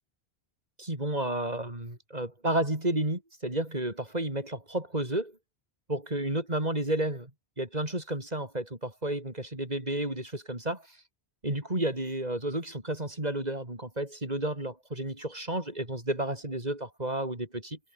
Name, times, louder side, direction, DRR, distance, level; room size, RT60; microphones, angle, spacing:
voice 1, 0.8-5.3 5.9-7.3 7.6-10.8 11.4-17.8, right 1 dB, 40° right, 4.6 m, -31 dB
omnidirectional pair, 1.1 m